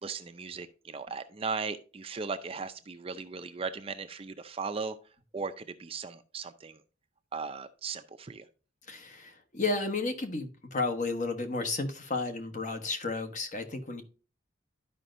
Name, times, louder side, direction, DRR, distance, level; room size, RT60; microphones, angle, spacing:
voice 1, 0.0-5.0 5.3-6.8 7.3-8.5, right 4 dB, 30° right, 0.5 m, -37 dB
voice 2, 8.9-14.0, left 3 dB, 40° left, 1.1 m, -32 dB
12.5 x 5.1 x 2.6 m
head